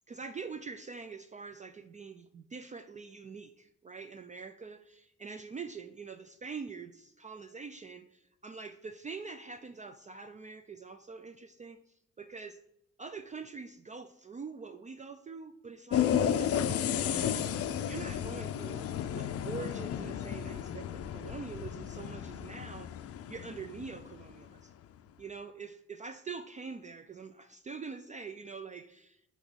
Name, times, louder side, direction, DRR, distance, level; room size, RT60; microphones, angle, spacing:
voice 1, 0.1-11.8 12.2-12.6 13.0-22.9 23.3-24.7 25.2-29.3, right 5 dB, 25° right, 9 dB, 0.3 m, -45 dB
sound 1, 15.9-24.3, left 9 dB, 50° left, 0.5 m, -33 dB
5.9 x 3.0 x 5.2 m, 0.78 s
cardioid pair, 90°, 30 cm